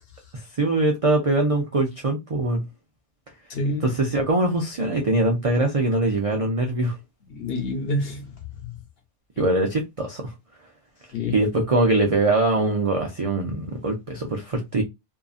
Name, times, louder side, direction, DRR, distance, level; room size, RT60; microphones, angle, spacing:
voice 1, 0.3-2.6 3.8-7.0 9.4-10.3 11.3-14.8, right 2 dB, 55° right, 0.3 m, -22 dB
voice 2, 3.5-4.0 7.3-8.8 11.1-11.4, left 2 dB, 55° left, 1.0 m, -28 dB
2.7 x 2.5 x 2.4 m
omnidirectional pair, 1.3 m